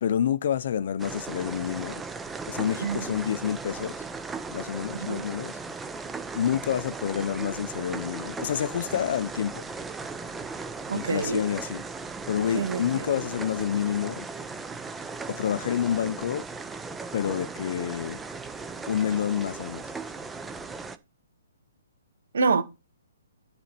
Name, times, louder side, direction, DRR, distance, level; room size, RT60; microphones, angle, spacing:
voice 1, 0.0-2.0 2.5-4.0 4.5-5.6 6.3-9.6 10.9-11.8 12.3-14.3 15.3-16.5 17.1-18.2 18.9-19.8, left 9 dB, 50° left, 0.7 m, -28 dB
sound 1, 1.0-21.0, right 4 dB, 5° right, 0.6 m, -37 dB
voice 2, 4.9-5.3 10.9-11.4 12.5-13.1 22.3-22.6, right 4 dB, 70° right, 2.2 m, -27 dB
12.5 x 4.2 x 4.4 m
hypercardioid pair, 165°, 0 cm